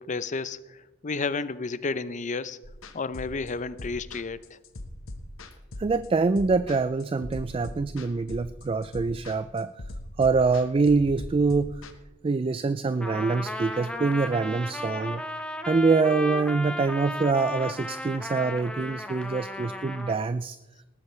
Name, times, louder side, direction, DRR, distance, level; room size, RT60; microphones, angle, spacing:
voice 1, 0.0-2.6 2.9-4.6, left 4 dB, 40° left, 14 dB, 0.6 m, -32 dB
sound 1, 2.6-11.9, left 1 dB, 80° left, 1.2 m, -40 dB
voice 2, 5.8-9.7 10.2-11.8 12.2-15.2 15.6-20.6, right 4 dB, 25° right, 13 dB, 0.3 m, -25 dB
Trumpet, 13.0-20.2, left 1 dB, 5° left, 0.8 m, -35 dB
19.5 x 13.0 x 3.3 m, 1.0 s
head